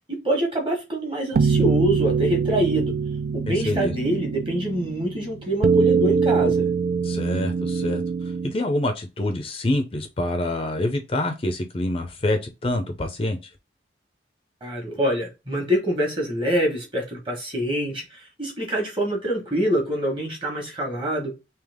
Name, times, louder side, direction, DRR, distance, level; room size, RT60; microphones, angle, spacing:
voice 1, 0.1-2.9 3.3-6.7 14.6-21.3, right 1 dB, 30° right, 1.3 m, -25 dB
sound 1, 1.3-8.5, right 5 dB, 55° right, 0.3 m, -23 dB
voice 2, 3.5-3.9 7.0-8.0 8.4-13.4, left 1 dB, 30° left, 0.5 m, -26 dB
3.4 x 2.9 x 3.5 m
head